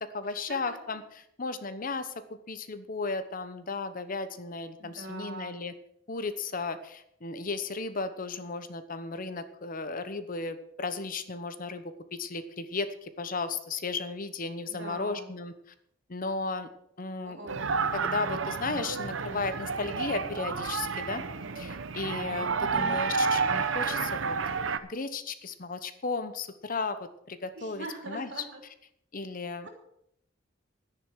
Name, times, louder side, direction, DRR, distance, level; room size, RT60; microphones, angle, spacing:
voice 1, 0.0-2.1 2.5-5.7 6.1-15.5 16.1-16.7 17.0-17.4 17.9-21.2 21.5-24.3 24.9-28.4 29.1-29.7, left 3 dB, 45° left, 11 dB, 1.0 m, -35 dB
voice 2, 4.8-5.5 14.7-15.3 17.2-17.5 22.6-23.0 27.6-28.6 29.6-29.7, right 2 dB, 65° right, 3 dB, 3.1 m, -42 dB
sound 1, 17.5-24.8, right 5 dB, 80° right, 0.8 m, -30 dB
10.5 x 10.0 x 6.2 m, 0.73 s
head